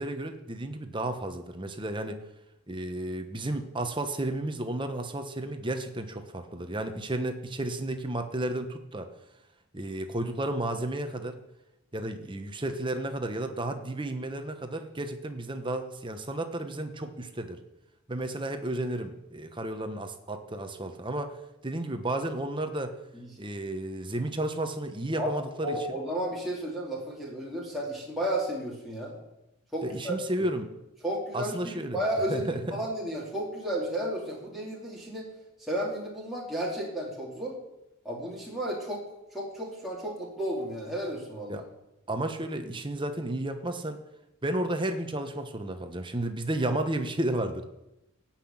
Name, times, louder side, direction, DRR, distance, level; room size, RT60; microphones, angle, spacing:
voice 1, 0.0-2.2 2.7-9.1 9.7-11.4 11.9-17.6 18.1-21.4 21.6-22.9 23.4-25.8 29.8-30.7 31.3-32.0 32.3-32.8 41.5-41.6 42.1-44.0 44.4-47.7, right 1 dB, 20° right, 7 dB, 1.1 m, -32 dB
voice 2, 25.6-29.2 29.7-30.5 31.0-35.3 35.6-37.6 38.0-39.0 39.3-41.7, right 1 dB, ahead, -5 dB, 2.6 m, -33 dB
16.5 x 5.9 x 8.8 m, 0.91 s
head